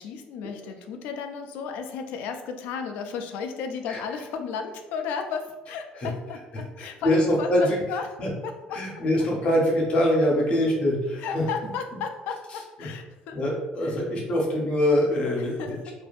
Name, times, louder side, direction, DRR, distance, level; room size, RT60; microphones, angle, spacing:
voice 1, 0.0-8.1 8.4-8.8 11.2-13.4 13.8-14.0 15.6-15.9, left 6 dB, 85° left, 6 dB, 0.3 m, -34 dB
voice 2, 6.8-7.8 8.2-8.3 8.7-11.4 12.8-12.9 13.3-15.8, left 1 dB, 40° left, -2 dB, 0.7 m, -24 dB
2.6 x 2.5 x 2.3 m, 1.1 s
cardioid pair, 150°, 3 cm